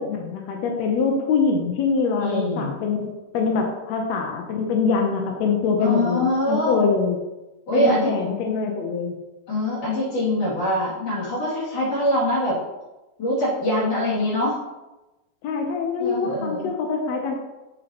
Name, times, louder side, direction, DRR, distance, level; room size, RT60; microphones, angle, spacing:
voice 1, 0.0-7.2 7.7-9.2 15.4-17.3, left 5 dB, 75° left, 2 dB, 1.6 m, -24 dB
voice 2, 2.2-2.7 5.8-6.9 7.7-8.1 9.5-12.6 13.2-14.6 16.0-16.7, left 1 dB, 45° left, -7 dB, 3.5 m, -23 dB
7.9 x 6.6 x 2.9 m, 1.1 s
omnidirectional pair, 4.0 m